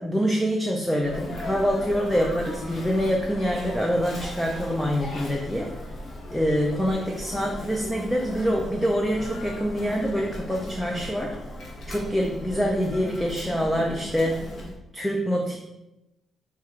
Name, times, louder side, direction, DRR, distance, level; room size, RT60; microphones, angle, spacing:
voice 1, 0.0-5.7 6.3-11.3 11.9-14.4 14.9-15.6, equal, 5° left, 0 dB, 0.4 m, -25 dB
Sneeze, 1.0-14.8, left 1 dB, 40° left, 0.9 m, -37 dB
4.3 x 2.4 x 4.7 m, 0.95 s
cardioid pair, 170°, 0 cm